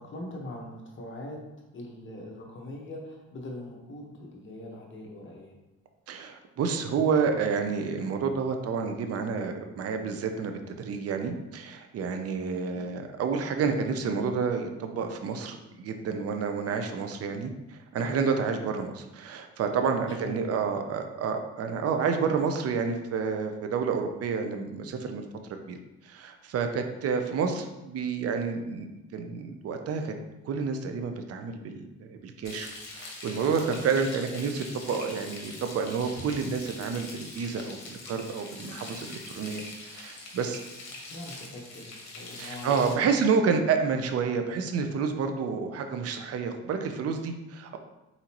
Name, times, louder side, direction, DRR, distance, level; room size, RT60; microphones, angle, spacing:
voice 1, 0.0-1.4 1.7-5.5 12.5-12.9 20.2-20.7 40.9-43.2, left 1 dB, 40° left, -1 dB, 1.2 m, -42 dB
voice 2, 6.1-25.2 25.7-25.8 26.0-30.1 30.4-40.6 42.4-47.8, right 5 dB, 55° right, 5 dB, 0.6 m, -29 dB
Frying (food), 32.4-42.9, left 2 dB, 65° left, 1.1 m, -43 dB
4.2 x 3.8 x 2.9 m, 0.99 s
cardioid pair, 90°, 30 cm